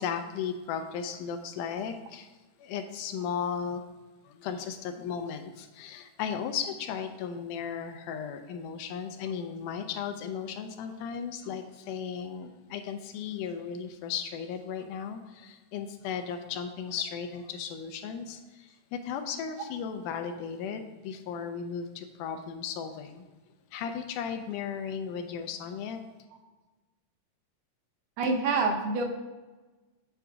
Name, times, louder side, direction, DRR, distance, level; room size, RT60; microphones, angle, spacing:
voice 1, 0.0-2.3 2.6-3.8 4.4-18.4 18.9-23.3 23.7-26.0, left 7 dB, 80° left, 7 dB, 2.0 m, -35 dB
voice 2, 28.2-29.0, right 3 dB, 85° right, 2 dB, 2.6 m, -26 dB
8.0 x 3.5 x 4.6 m, 1.2 s
omnidirectional pair, 3.8 m